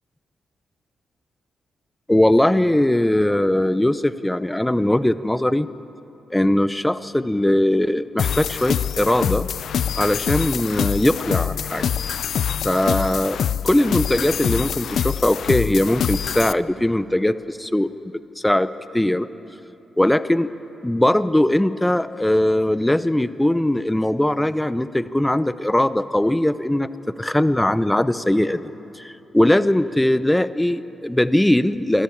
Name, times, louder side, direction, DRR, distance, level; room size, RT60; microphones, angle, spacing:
voice 1, 2.1-5.7 6.3-9.5 10.0-11.8 12.6-13.4 13.6-17.9 18.4-18.7 18.9-19.3 20.0-20.5 20.8-26.9 27.2-28.7 29.0-32.0, left 1 dB, 10° left, 14 dB, 0.6 m, -20 dB
sound 1, 8.2-16.5, left 9 dB, 75° left, 0.4 m, -25 dB
25.0 x 13.0 x 8.6 m, 2.9 s
cardioid pair, 70°, 0 cm